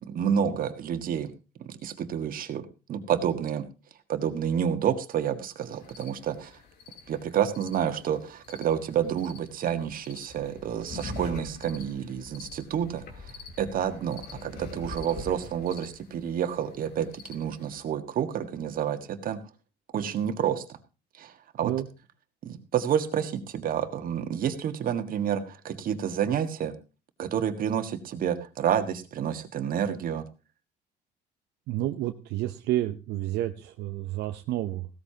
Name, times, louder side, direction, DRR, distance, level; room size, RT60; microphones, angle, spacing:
voice 1, 0.0-1.3 1.6-3.7 4.1-6.5 7.1-19.4 19.9-20.6 21.2-21.7 22.4-26.8 27.2-30.3, right 8 dB, 55° right, 8 dB, 1.6 m, -29 dB
sound 1, 5.6-17.8, left 3 dB, 75° left, 3.3 m, -45 dB
voice 2, 31.7-34.9, right 14 dB, 85° right, 7 dB, 0.8 m, -30 dB
16.5 x 13.5 x 2.9 m, 0.30 s
cardioid pair, 110°, 17 cm